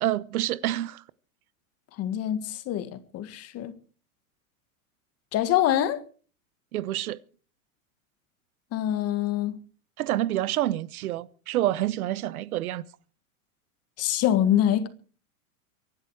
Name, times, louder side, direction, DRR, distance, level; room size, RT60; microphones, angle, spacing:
voice 1, 0.0-1.0 6.7-7.2 10.0-12.8, right 14 dB, 75° right, 1.0 m, -28 dB
voice 2, 2.0-3.8 5.3-6.0 8.7-9.6 14.0-14.9, left 11 dB, 35° left, 1.9 m, -25 dB
24.0 x 11.0 x 4.8 m
hypercardioid pair, 130°, 43 cm